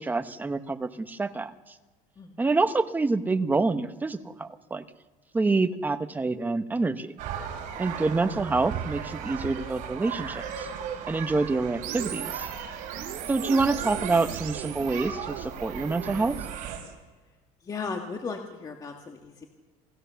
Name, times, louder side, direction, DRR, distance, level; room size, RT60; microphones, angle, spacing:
voice 1, 0.0-1.5 2.4-4.8 5.3-7.2 7.8-10.7 11.1-12.5 13.3-16.4, right 3 dB, 10° right, 9 dB, 1.0 m, -27 dB
sound 1, 7.2-16.8, right 8 dB, 60° right, 5.3 m, -37 dB
voice 2, 7.7-8.1 13.0-13.3 17.6-19.5, left 4 dB, 25° left, 3 dB, 1.9 m, -37 dB
sound 2, 11.8-16.9, right 11 dB, 80° right, 3.6 m, -39 dB
28.0 x 18.0 x 7.0 m, 1.3 s
cardioid pair, 155°, 15 cm